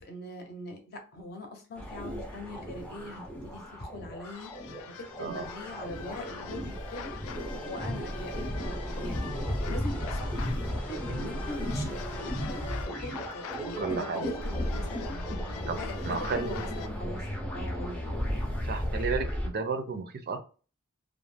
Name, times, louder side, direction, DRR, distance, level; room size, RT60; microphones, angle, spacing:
voice 1, 0.0-4.5 5.2-7.1 7.6-9.3 9.6-10.5 10.9-12.7 13.0-15.2 15.8-17.3 17.5-18.0, left 1 dB, 50° left, 4 dB, 0.7 m, -42 dB
sound 1, 1.8-19.5, equal, 5° left, 0.4 m, -35 dB
sound 2, 4.2-16.9, left 8 dB, 80° left, 0.3 m, -45 dB
voice 2, 13.8-14.3 15.7-15.8 16.0-16.6 18.6-20.4, right 5 dB, 50° right, 7 dB, 0.4 m, -32 dB
2.4 x 2.0 x 3.1 m, 0.36 s
head